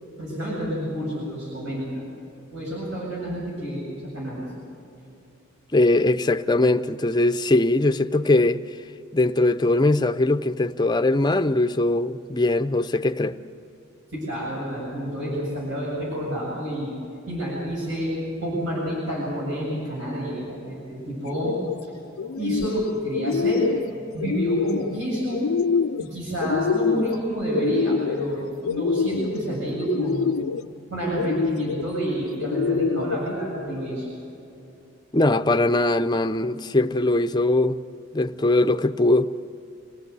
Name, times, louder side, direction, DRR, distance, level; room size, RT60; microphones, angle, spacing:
voice 1, 0.0-2.0 2.5-4.5 14.1-17.0 17.3-18.1 18.4-21.5 22.4-23.7 24.1-25.5 26.0-30.4 30.9-34.1, right 1 dB, 65° right, 7.6 m, -29 dB
voice 2, 5.7-8.6 9.1-13.4 35.1-37.8 38.1-39.3, left 2 dB, 20° left, 0.6 m, -21 dB
sound 1, 21.3-21.8 22.2-22.8 23.1-23.9 24.2-24.9 25.3-26.1 26.4-27.2 27.5-28.3 28.6-29.4 29.9-30.6 31.1-31.8 32.4-33.2, left 6 dB, 85° left, 0.4 m, -25 dB
26.0 x 16.5 x 8.2 m
head